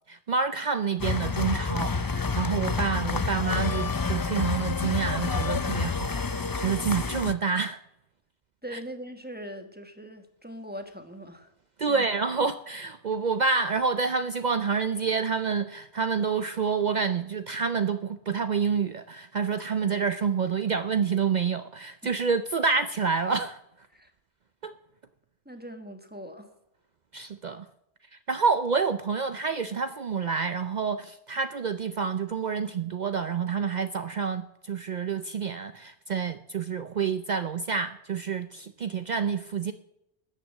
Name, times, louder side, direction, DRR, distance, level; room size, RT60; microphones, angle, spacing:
voice 1, 0.1-7.8 8.7-8.8 11.8-23.6 24.6-24.7 27.1-27.7 28.3-39.7, right 5 dB, 50° right, 11 dB, 0.7 m, -28 dB
sound 1, 1.0-7.3, left 4 dB, 30° left, 0.4 m, -28 dB
voice 2, 8.6-11.5 11.9-12.1 22.0-22.1 23.9-24.1 25.4-26.5, equal, 10° right, 6 dB, 1.4 m, -41 dB
13.5 x 9.0 x 7.5 m, 0.81 s
omnidirectional pair, 1.1 m